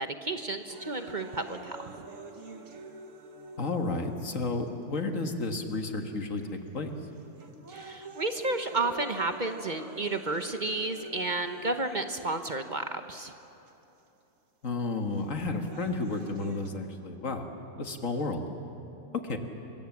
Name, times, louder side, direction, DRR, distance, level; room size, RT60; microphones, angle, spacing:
voice 1, 0.0-2.1 7.7-13.3, right 2 dB, 40° right, 7 dB, 1.0 m, -32 dB
sound 1, 0.7-4.7 5.4-5.5 6.4-6.7 7.2-12.7 13.7-13.8 15.2-16.7, right 3 dB, 70° right, 1.8 m, -46 dB
voice 2, 3.6-6.9 14.6-17.5 17.8-18.4 19.1-19.4, left 3 dB, 70° left, 4 dB, 2.1 m, -32 dB
25.5 x 23.5 x 7.3 m, 2.9 s
omnidirectional pair, 1.4 m